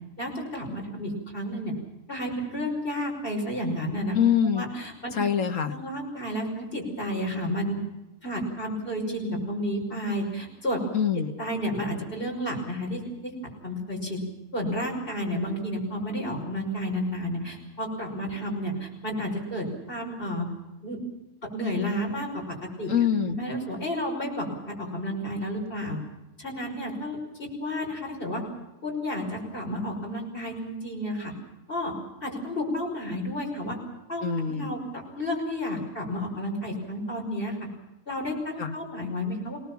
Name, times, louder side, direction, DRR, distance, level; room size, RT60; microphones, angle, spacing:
voice 1, 0.2-1.7 2.1-4.2 4.5-5.1 5.7-7.8 8.2-10.8 11.4-13.3 13.6-14.2 14.5-20.5 20.8-21.0 21.5-22.9 23.2-26.0 26.4-28.4 28.8-31.3 31.7-31.9 32.2-33.8 34.1-37.7 38.1-39.6, equal, 45° left, 0 dB, 5.9 m, -31 dB
voice 2, 4.1-4.6 5.1-5.8 10.9-11.3 22.9-23.4 34.2-34.8 38.6-38.8, left 8 dB, 90° left, 6 dB, 1.8 m, -24 dB
26.5 x 18.5 x 7.3 m, 1.0 s
omnidirectional pair, 1.3 m